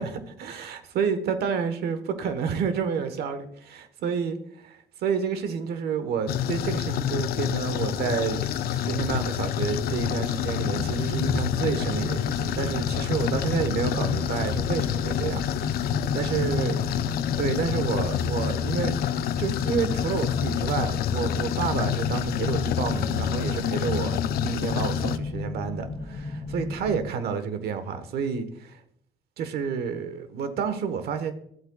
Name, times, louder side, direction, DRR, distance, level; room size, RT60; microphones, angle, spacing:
voice 1, 0.0-16.8 17.4-19.0 19.4-28.8 29.4-31.3, right 6 dB, 70° right, 9 dB, 1.3 m, -29 dB
sound 1, 6.3-25.2, left 10 dB, 65° left, 0.5 m, -28 dB
sound 2, 10.6-27.1, left 3 dB, 25° left, 1.8 m, -34 dB
14.0 x 8.0 x 2.4 m, 0.69 s
cardioid pair, 110°, 17 cm